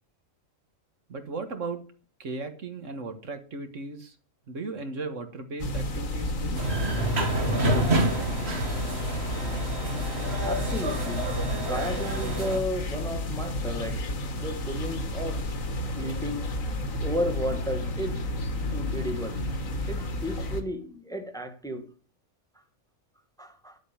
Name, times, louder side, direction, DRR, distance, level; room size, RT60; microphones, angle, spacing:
voice 1, 1.1-1.8 2.2-4.2 4.5-6.6, right 3 dB, 70° right, 1.8 m, -36 dB
sound 1, 5.6-20.6, left 1 dB, 80° left, 1.9 m, -31 dB
sound 2, 6.6-12.6, right 1 dB, 50° right, 2.1 m, -28 dB
voice 2, 10.4-11.3 11.7-14.0 14.4-15.5 15.9-16.6 17.0-18.2 18.7-19.4 19.9-21.9 23.4-23.8, equal, 5° left, 1.3 m, -33 dB
11.0 x 8.1 x 6.8 m
omnidirectional pair, 1.4 m